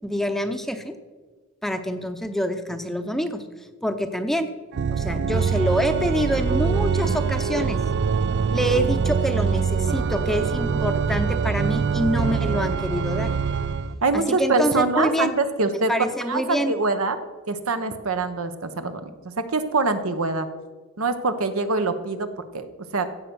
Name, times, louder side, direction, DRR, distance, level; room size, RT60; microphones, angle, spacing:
voice 1, 0.0-0.9 1.6-3.5 3.8-4.5 4.9-7.8 8.5-13.3 14.1-15.4 15.9-16.7, equal, ahead, 7 dB, 0.6 m, -26 dB
Organ, 4.7-14.0, right 6 dB, 50° right, 0.3 m, -24 dB
voice 2, 14.0-15.9 16.3-17.2 17.5-20.5 21.0-22.3 22.5-22.7 22.9-23.1, right 3 dB, 80° right, 9 dB, 1.0 m, -24 dB
16.0 x 6.7 x 6.1 m, 1.4 s
head